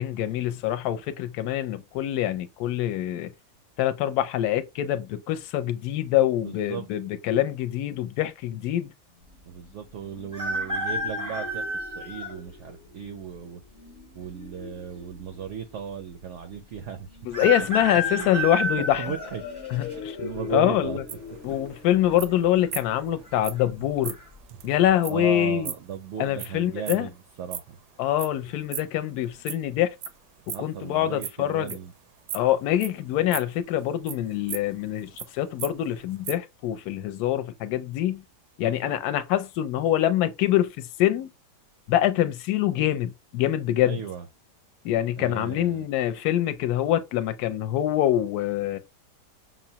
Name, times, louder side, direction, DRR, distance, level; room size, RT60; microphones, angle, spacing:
voice 1, 0.0-3.3 3.8-8.9 17.2-19.1 19.7-20.2 20.5-21.0 21.4-24.2 24.6-25.7 26.2-27.1 28.0-29.9 30.5-31.8 32.3-38.2 38.6-41.3 41.9-44.0 44.8-48.8, left 12 dB, 75° left, 1.0 m, -25 dB
voice 2, 6.4-6.9 9.4-13.6 14.1-17.4 18.0-18.3 19.0-19.4 19.9-21.0 25.1-27.8 30.5-31.9 38.6-39.0 43.8-44.3 45.2-45.9, right 8 dB, 70° right, 0.7 m, -36 dB
sound 1, 9.6-23.6, left 5 dB, 60° left, 0.7 m, -42 dB
sound 2, 10.3-12.3 13.0-13.1 14.2-14.8 15.1-15.2 15.4-15.5 17.3-19.9 20.5-20.9 22.0-22.4 22.6-22.7 23.2-23.6 24.1-24.3, right 1 dB, 25° right, 0.4 m, -30 dB
sound 3, 21.1-27.8 28.1-30.1 30.4-31.9 32.3-33.6 34.1-35.3 35.6-35.7 36.0-36.4, right 9 dB, 90° right, 1.2 m, -37 dB
5.9 x 2.0 x 2.8 m
omnidirectional pair, 1.8 m